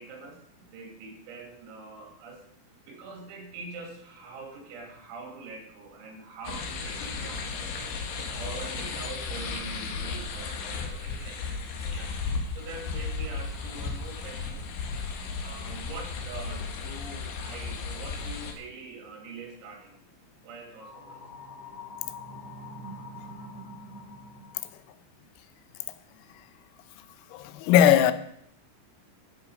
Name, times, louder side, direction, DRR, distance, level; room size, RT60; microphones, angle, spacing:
voice 1, 0.0-2.4 2.9-7.9 8.4-12.2 12.6-14.8 15.4-20.0 20.4-21.2, right 4 dB, 80° right, 5.2 m, -44 dB
sound 1, 6.4-18.5, left 4 dB, 70° left, 2.6 m, -35 dB
sound 2, 20.8-24.8, left 2 dB, 40° left, 1.4 m, -44 dB
voice 2, 27.3-28.1, left 10 dB, 90° left, 3.5 m, -19 dB
13.0 x 8.6 x 4.9 m
omnidirectional pair, 6.0 m